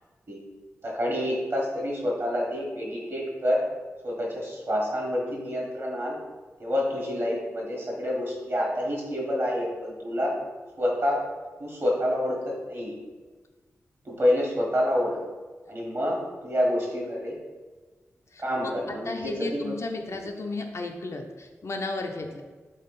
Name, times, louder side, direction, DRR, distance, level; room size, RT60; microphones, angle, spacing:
voice 1, 0.8-3.6 4.0-6.2 6.6-10.4 10.8-11.2 11.6-13.0 14.0-15.2 15.7-17.4 18.4-19.7, left 1 dB, 45° right, -2 dB, 1.4 m, -28 dB
voice 2, 18.3-22.4, left 2 dB, 55° left, 3 dB, 0.5 m, -34 dB
3.8 x 3.0 x 4.1 m, 1.3 s
cardioid pair, 50°, 6 cm